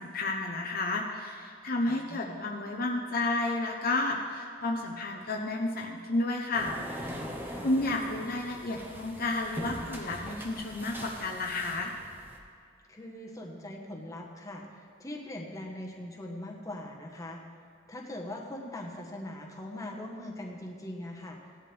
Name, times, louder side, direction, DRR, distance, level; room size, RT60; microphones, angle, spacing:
voice 1, 0.0-7.2 7.6-11.9, left 2 dB, 50° left, 0 dB, 0.9 m, -31 dB
voice 2, 1.9-2.4 7.4-7.7 12.9-17.4 17.9-21.4, left 1 dB, 15° left, -1 dB, 1.3 m, -41 dB
sound 1, 6.5-12.4, equal, 10° right, 1.1 m, -41 dB
16.5 x 11.0 x 3.5 m, 2.4 s
head